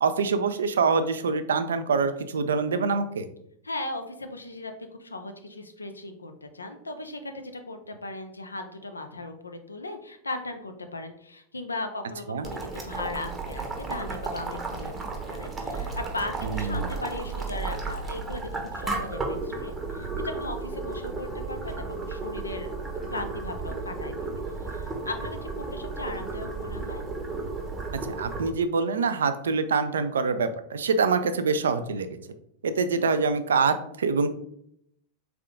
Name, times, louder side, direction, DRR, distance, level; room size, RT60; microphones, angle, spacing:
voice 1, 0.0-3.3 12.3-12.4 16.4-16.9 28.1-32.1 32.6-34.3, right 4 dB, 65° right, 10 dB, 0.4 m, -25 dB
voice 2, 3.6-22.8 23.1-24.1 24.6-27.0, left 2 dB, 80° left, 6 dB, 0.5 m, -37 dB
Boiling, 12.4-28.5, right 3 dB, 15° right, 0.8 m, -33 dB
3.6 x 3.5 x 3.5 m, 0.73 s
figure-of-eight pair, 90°, 0 cm